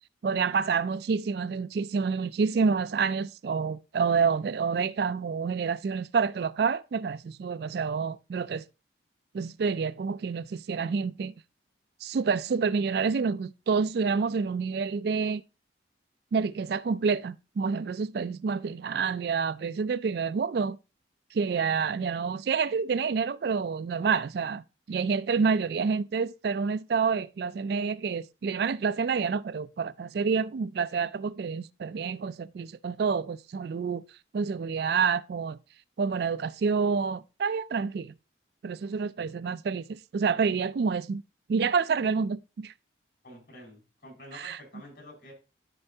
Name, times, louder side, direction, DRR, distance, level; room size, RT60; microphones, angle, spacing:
voice 1, 0.2-8.6 9.3-11.3 12.0-15.4 16.3-20.8 21.3-34.0 34.3-35.6 36.0-38.1 38.6-41.2 41.5-42.7 44.3-44.6, right 5 dB, 60° right, 0.3 m, -28 dB
voice 2, 43.2-45.3, left 1 dB, 65° left, 5.0 m, -49 dB
13.0 x 4.4 x 2.8 m
head